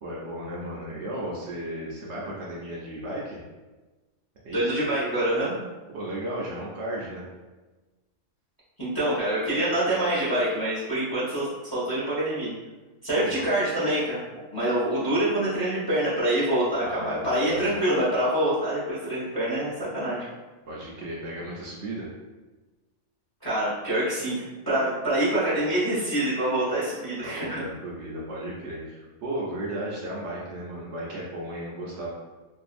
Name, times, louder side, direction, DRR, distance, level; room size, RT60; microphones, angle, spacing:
voice 1, 0.0-3.4 4.4-4.7 5.9-7.2 13.2-13.4 16.8-17.7 20.7-22.1 27.2-32.1, right 1 dB, 65° right, -5 dB, 0.8 m, -35 dB
voice 2, 4.5-5.5 8.8-12.5 13.0-14.2 14.5-20.3 23.4-27.6, right 1 dB, 20° left, -9 dB, 0.7 m, -26 dB
2.6 x 2.4 x 2.4 m, 1.2 s
omnidirectional pair, 1.4 m